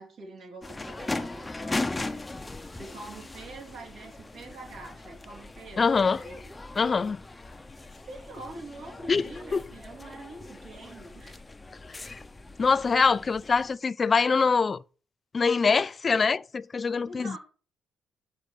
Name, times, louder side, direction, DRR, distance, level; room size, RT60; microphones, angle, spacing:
voice 1, 0.0-6.5 7.8-11.4 17.0-17.4, right 2 dB, 65° right, 3.7 m, -45 dB
sound 1, 0.6-13.8, left 2 dB, 20° left, 0.7 m, -39 dB
voice 2, 5.8-6.2 6.8-7.2 9.1-9.6 11.9-12.2 12.6-14.8 15.3-17.4, left 5 dB, 35° left, 0.3 m, -24 dB
6.6 x 4.9 x 6.8 m
cardioid pair, 90°, 0 cm